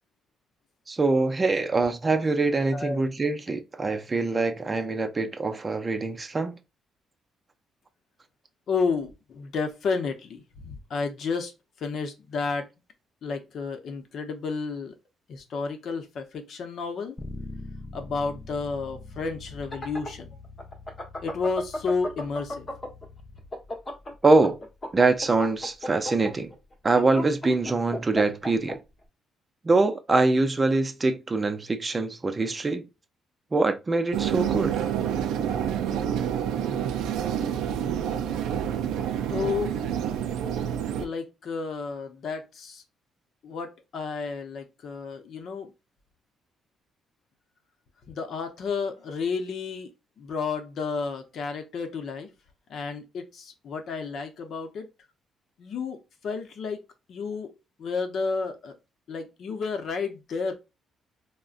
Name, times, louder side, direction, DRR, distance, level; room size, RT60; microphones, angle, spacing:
voice 1, 0.9-6.6 24.2-24.6 24.9-26.5 26.8-28.8 29.6-32.8 33.5-34.9, right 3 dB, 30° right, 0.5 m, -24 dB
voice 2, 8.7-11.5 11.8-12.7 13.2-14.9 15.3-17.2 17.9-20.3 21.2-22.7 39.3-39.7 41.0-42.8 43.4-45.7 48.1-49.9 50.2-52.3 52.7-54.9 55.6-56.0 56.2-56.8 57.1-57.5 57.8-58.7 59.1-60.5, left 4 dB, 65° left, 0.7 m, -31 dB
Bass guitar, 17.2-23.4, left 2 dB, 15° left, 0.6 m, -43 dB
sound 1, 19.5-23.0 23.4-28.7, left 1 dB, 35° left, 1.0 m, -34 dB
sound 2, 34.1-41.1, right 9 dB, 90° right, 0.3 m, -28 dB
3.6 x 2.1 x 2.5 m
cardioid pair, 90°, 0 cm